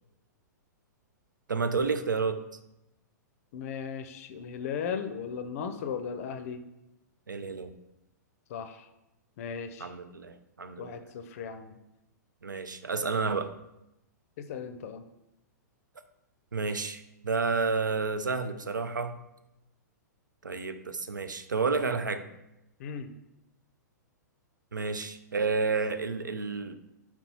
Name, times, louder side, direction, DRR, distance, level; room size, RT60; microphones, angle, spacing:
voice 1, 1.5-2.4 7.3-7.7 9.8-11.0 12.4-13.5 16.5-19.2 20.4-22.3 24.7-26.8, right 4 dB, 85° right, 10 dB, 0.4 m, -30 dB
voice 2, 3.5-6.6 8.5-8.9 9.4-10.0 10.8-11.8 14.4-15.0 22.8-23.1, left 7 dB, 50° left, 9 dB, 0.5 m, -37 dB
4.4 x 3.9 x 2.9 m, 0.88 s
figure-of-eight pair, 110°, 10 cm